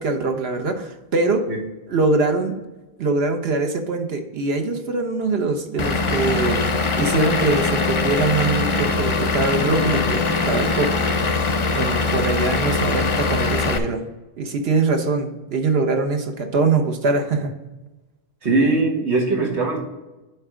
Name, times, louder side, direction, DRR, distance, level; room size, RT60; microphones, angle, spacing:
voice 1, 0.0-1.5 1.9-2.6 3.0-10.9 11.7-14.1 14.4-17.5, right 3 dB, 70° right, 5 dB, 1.2 m, -23 dB
Vehicle / Engine, 5.8-13.8, left 4 dB, 40° left, 0.5 m, -22 dB
voice 2, 18.4-19.8, right 3 dB, 90° right, 0 dB, 1.9 m, -20 dB
10.0 x 3.4 x 4.9 m, 1.1 s
omnidirectional pair, 1.1 m